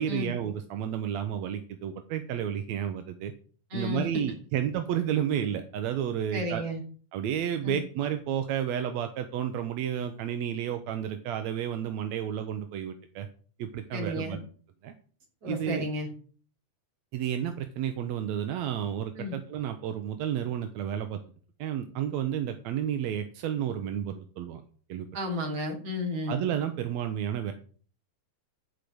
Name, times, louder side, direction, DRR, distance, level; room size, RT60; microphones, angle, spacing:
voice 1, 0.0-3.3 3.7-6.6 7.1-13.3 13.6-14.4 14.8-14.9 15.5-15.9 17.1-21.2 21.6-24.6 24.9-25.1 26.3-27.5, right 9 dB, 70° right, 7 dB, 1.9 m, -31 dB
voice 2, 3.7-4.2 6.3-6.8 7.6-7.8 13.9-14.4 15.4-16.1 19.2-19.4 25.1-26.4, left 1 dB, 50° right, 2 dB, 4.0 m, -32 dB
12.0 x 5.1 x 7.9 m, 0.43 s
omnidirectional pair, 3.8 m